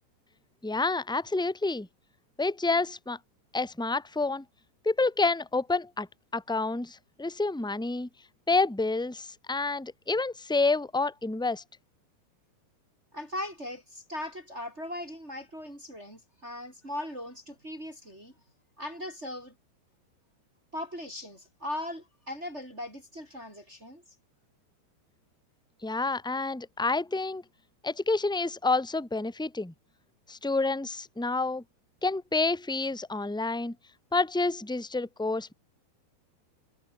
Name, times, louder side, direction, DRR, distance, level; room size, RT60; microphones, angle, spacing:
voice 1, 0.6-1.9 2.4-3.2 3.5-4.4 4.8-6.1 6.3-8.1 8.5-11.6 25.8-27.4 27.8-29.7 30.3-31.6 32.0-33.7 34.1-35.5, left 3 dB, ahead, 1.4 m, -28 dB
voice 2, 13.1-18.3 18.8-19.5 20.7-24.0, left 1 dB, 15° right, 7.4 m, -39 dB
omnidirectional pair, 5.0 m